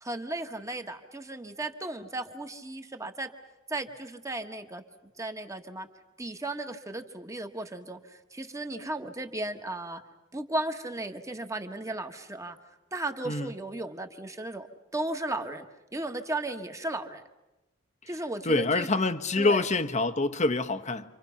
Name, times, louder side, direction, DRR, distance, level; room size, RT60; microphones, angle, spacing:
voice 1, 0.0-3.3 3.7-4.8 5.2-5.9 6.2-8.0 8.3-10.0 10.3-12.6 12.9-14.7 14.9-15.6 15.9-17.2 18.1-18.9 19.4-19.7, right 2 dB, 15° right, 1.5 m, -35 dB
voice 2, 18.4-21.0, left 2 dB, 40° left, 1.1 m, -26 dB
29.5 x 25.5 x 5.8 m
head